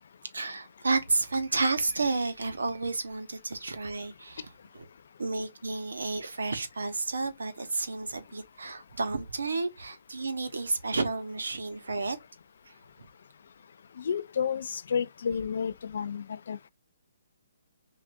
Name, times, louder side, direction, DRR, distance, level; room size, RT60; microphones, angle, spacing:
voice 1, 0.3-4.5 4.7-4.8 5.2-12.2 12.7-13.1, right 3 dB, 90° right, 1.0 m, -31 dB
voice 2, 14.0-16.7, left 7 dB, 60° left, 0.4 m, -31 dB
5.9 x 2.5 x 2.6 m
hypercardioid pair, 155°, 0 cm